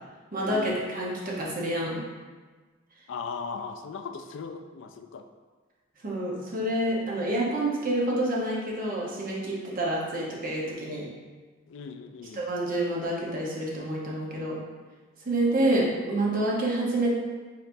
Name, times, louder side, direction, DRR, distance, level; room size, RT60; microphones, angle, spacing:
voice 1, 0.3-2.0 6.0-11.0 12.3-14.6 15.2-17.2, right 1 dB, 45° right, -4 dB, 0.9 m, -28 dB
voice 2, 3.1-5.2 11.7-12.4, left 5 dB, 65° left, 7 dB, 0.3 m, -38 dB
4.3 x 3.9 x 2.7 m, 1.4 s
head